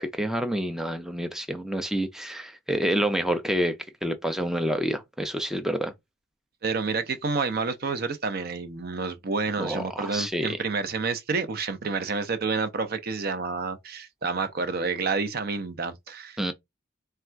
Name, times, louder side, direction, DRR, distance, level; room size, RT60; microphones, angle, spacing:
voice 1, 0.0-3.7 4.0-5.9 9.6-10.6 16.4-16.5, equal, ahead, 0.4 m, -28 dB
voice 2, 6.6-16.5, right 4 dB, 50° right, 0.6 m, -29 dB
3.5 x 2.3 x 4.4 m
head